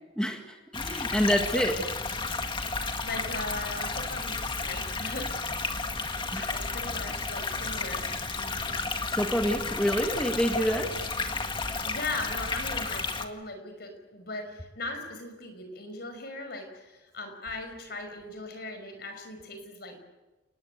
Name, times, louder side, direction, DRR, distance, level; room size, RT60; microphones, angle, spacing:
voice 1, 0.2-1.9 6.3-6.5 7.1-7.2 9.1-11.0, equal, 5° left, 3 dB, 1.9 m, -27 dB
sound 1, 0.7-13.2, left 3 dB, 25° left, 1.8 m, -32 dB
voice 2, 3.0-5.3 6.5-8.2 11.8-20.0, left 2 dB, 60° left, 6 dB, 5.6 m, -38 dB
29.0 x 20.0 x 8.2 m, 1.1 s
head